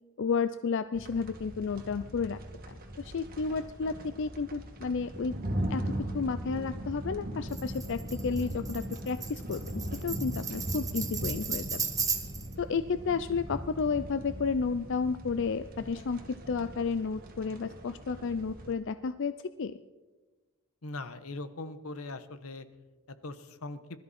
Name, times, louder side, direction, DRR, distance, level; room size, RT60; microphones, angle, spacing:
voice 1, 0.2-2.4 2.7-5.4 5.7-5.8 6.1-11.8 12.6-19.8, left 5 dB, 60° left, 12 dB, 0.5 m, -32 dB
sound 1, 0.9-18.7, equal, 45° right, 2.0 m, -39 dB
Tambourine, 7.5-12.5, right 6 dB, 15° right, 1.4 m, -35 dB
voice 2, 20.8-22.6 23.2-23.8, left 2 dB, 85° left, 11 dB, 1.2 m, -40 dB
21.0 x 13.0 x 4.3 m, 1.2 s
head